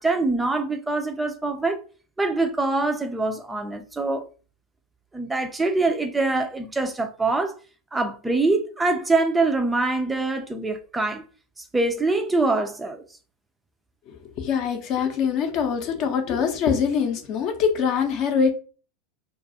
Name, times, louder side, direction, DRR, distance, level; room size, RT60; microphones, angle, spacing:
voice 1, 0.0-1.8 2.2-4.2 5.1-7.5 7.9-11.2 11.7-13.0, right 3 dB, 10° right, 0.3 m, -24 dB
voice 2, 14.1-18.5, left 6 dB, 50° left, 0.6 m, -24 dB
2.3 x 2.3 x 2.6 m
hypercardioid pair, 95°, 0 cm